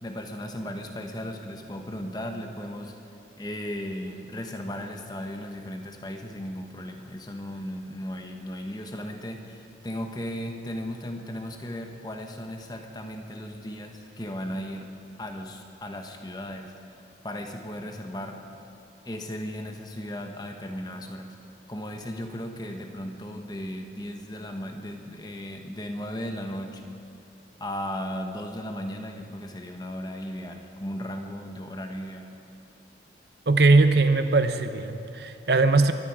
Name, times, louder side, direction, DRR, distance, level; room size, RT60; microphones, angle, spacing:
voice 1, 0.0-2.9 3.4-14.9 15.2-16.7 17.2-18.4 19.0-21.4 21.7-27.0 27.6-32.3, equal, 25° left, 4 dB, 1.2 m, -36 dB
voice 2, 33.5-35.9, right 3 dB, 70° right, 9 dB, 0.9 m, -20 dB
22.5 x 13.0 x 4.9 m, 2.7 s
head